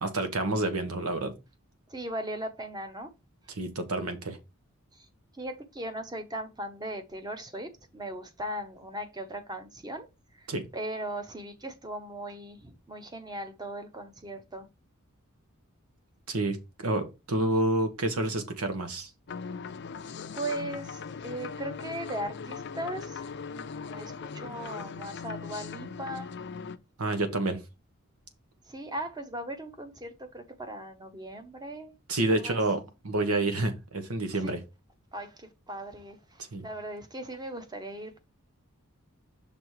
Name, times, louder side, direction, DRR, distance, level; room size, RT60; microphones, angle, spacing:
voice 1, 0.0-1.3 3.5-4.4 10.5-10.7 16.3-19.1 27.0-27.6 32.1-34.6 36.5-36.7, right 2 dB, 90° right, 1.3 m, -29 dB
voice 2, 1.9-3.1 4.9-5.1 5.3-10.1 10.3-14.7 20.3-26.3 27.1-27.4 28.7-31.9 32.3-32.6 34.3-34.6 35.1-38.2, right 1 dB, 20° right, 0.8 m, -38 dB
sound 1, 19.3-26.8, left 5 dB, 50° left, 0.5 m, -39 dB
6.0 x 3.6 x 4.7 m
head